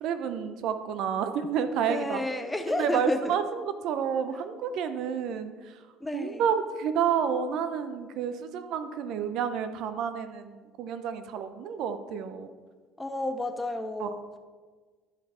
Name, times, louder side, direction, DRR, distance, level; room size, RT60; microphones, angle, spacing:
voice 1, 0.0-2.2 2.7-5.8 6.1-12.5 14.0-14.1, right 7 dB, 60° right, 10 dB, 0.7 m, -30 dB
voice 2, 1.8-3.4 6.0-6.4 13.0-14.4, left 2 dB, 10° left, 7 dB, 0.7 m, -31 dB
11.5 x 5.4 x 4.4 m, 1.4 s
cardioid pair, 120°, 0 cm